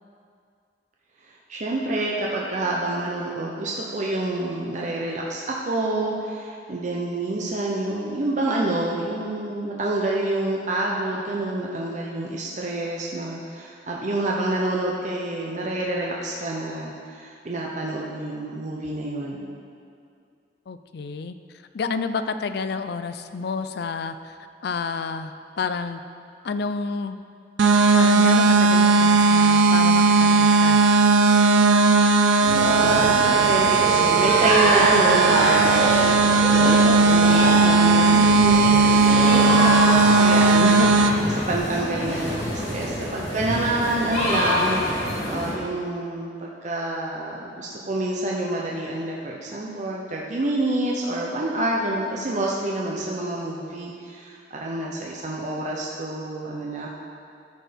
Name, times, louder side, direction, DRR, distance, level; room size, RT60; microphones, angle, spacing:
voice 1, 1.5-19.4 32.6-56.9, right 2 dB, 40° right, -3 dB, 0.8 m, -27 dB
voice 2, 20.7-21.4 21.7-24.1 24.6-26.0 26.4-27.2 27.9-30.8, left 4 dB, 60° left, 10 dB, 0.4 m, -29 dB
sound 1, 27.6-41.1, right 4 dB, 90° right, 0.5 m, -17 dB
sound 2, 32.4-45.5, equal, 40° left, 2.2 m, -26 dB
13.0 x 4.6 x 5.1 m, 2.4 s
head